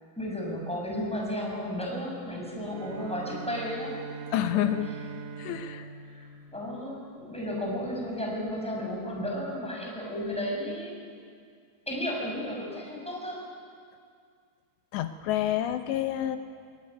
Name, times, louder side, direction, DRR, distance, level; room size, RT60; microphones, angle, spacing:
voice 1, 0.2-4.0 5.7-5.8 6.1-11.0 11.9-13.4, equal, ahead, -2 dB, 6.2 m, -33 dB
Bowed string instrument, 2.6-7.2, right 6 dB, 90° right, 3.5 m, -42 dB
voice 2, 4.3-4.9 5.4-5.9 14.9-16.4, left 12 dB, 80° left, 8 dB, 3.1 m, -28 dB
24.5 x 22.0 x 9.7 m, 2.2 s
omnidirectional pair, 5.0 m